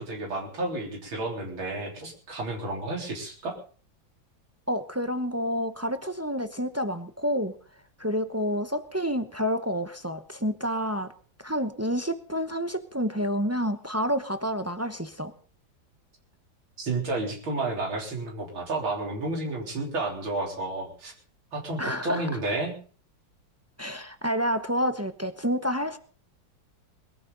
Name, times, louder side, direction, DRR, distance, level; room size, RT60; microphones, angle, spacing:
voice 1, 0.0-3.6 16.8-21.1 21.5-22.7, right 2 dB, 90° right, 0 dB, 4.3 m, -31 dB
voice 2, 4.7-7.5 8.0-11.1 11.4-15.3 21.8-22.3 23.8-26.0, equal, 25° right, 9 dB, 0.3 m, -29 dB
22.0 x 14.0 x 4.1 m, 0.41 s
omnidirectional pair, 2.1 m